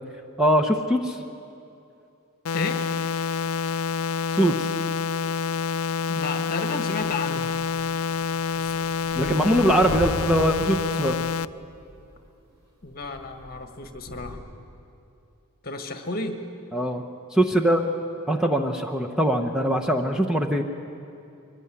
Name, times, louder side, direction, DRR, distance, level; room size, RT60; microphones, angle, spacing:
voice 1, 0.4-1.2 4.3-4.7 9.2-11.3 16.7-17.0 17.3-17.9 18.3-20.6, right 1 dB, 5° right, 1 dB, 0.8 m, -22 dB
sound 1, 2.5-11.5, left 6 dB, 80° left, 0.4 m, -27 dB
voice 2, 6.1-7.5 8.6-9.4 12.8-14.4 15.6-16.4, left 3 dB, 45° left, 6 dB, 1.6 m, -33 dB
sound 2, 8.5-12.2 12.8-14.4, left 1 dB, 90° right, 5.8 m, -38 dB
23.0 x 15.5 x 9.9 m, 2.7 s
head